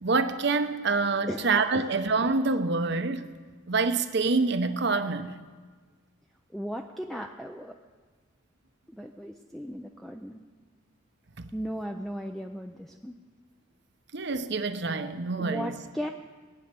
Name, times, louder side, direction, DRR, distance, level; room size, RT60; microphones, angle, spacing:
voice 1, 0.0-3.2 3.7-5.3 14.1-15.8, right 3 dB, 55° right, 9 dB, 0.8 m, -26 dB
voice 2, 6.5-7.7 9.0-10.4 11.5-13.1 15.4-16.1, equal, ahead, 3 dB, 0.4 m, -36 dB
19.5 x 9.3 x 6.8 m, 1.5 s
head